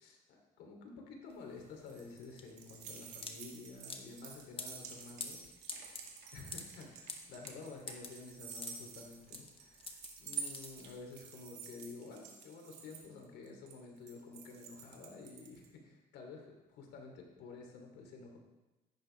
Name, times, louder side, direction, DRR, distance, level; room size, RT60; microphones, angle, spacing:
voice 1, 0.0-5.5 6.3-18.4, left 4 dB, 80° left, 1 dB, 3.2 m, -51 dB
sound 1, 1.3-11.2, left 4 dB, 35° left, 1.5 m, -48 dB
sound 2, 1.4-15.7, right 7 dB, 90° right, 2.1 m, -49 dB
14.0 x 11.5 x 3.5 m, 1.1 s
cardioid pair, 110°, 17 cm